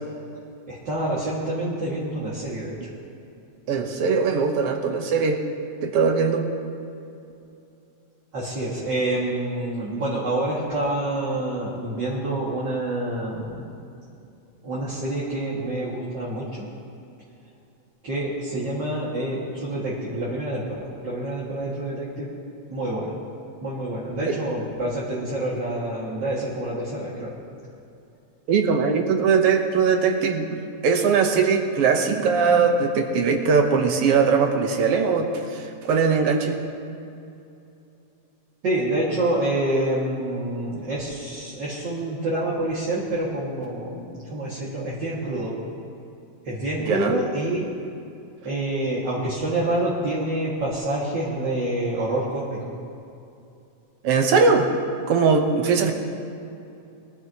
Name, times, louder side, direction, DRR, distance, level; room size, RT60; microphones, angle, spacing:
voice 1, 0.7-2.9 8.3-13.7 14.6-16.7 18.0-22.3 22.7-23.1 23.6-27.4 38.6-45.5 46.4-47.7 48.4-52.6, right 1 dB, 40° right, -7 dB, 2.3 m, -27 dB
voice 2, 3.7-5.4 5.8-6.5 24.3-24.4 28.5-36.6 46.8-47.2 54.0-54.7 55.1-55.9, right 5 dB, 65° right, 4 dB, 1.6 m, -20 dB
23.0 x 14.0 x 3.0 m, 2.7 s
omnidirectional pair, 3.6 m